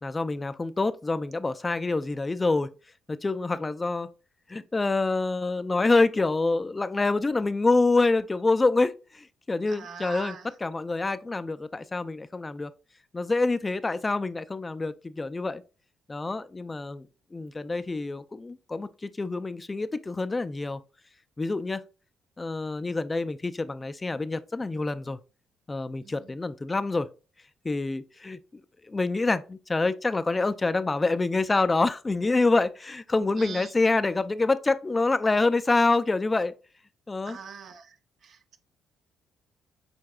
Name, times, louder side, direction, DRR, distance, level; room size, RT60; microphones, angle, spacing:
voice 1, 0.0-2.7 3.1-4.1 4.5-12.7 13.1-15.6 16.1-17.1 17.3-20.8 21.4-21.8 22.4-25.2 25.7-27.1 27.6-28.4 28.9-36.5 37.1-37.4, left 3 dB, 25° left, 0.4 m, -26 dB
voice 2, 9.7-10.4 26.0-26.2 33.4-33.7 37.3-37.9 38.2-38.6, right 6 dB, 65° right, 0.6 m, -42 dB
6.5 x 3.4 x 2.3 m
supercardioid pair, 75°, 0 cm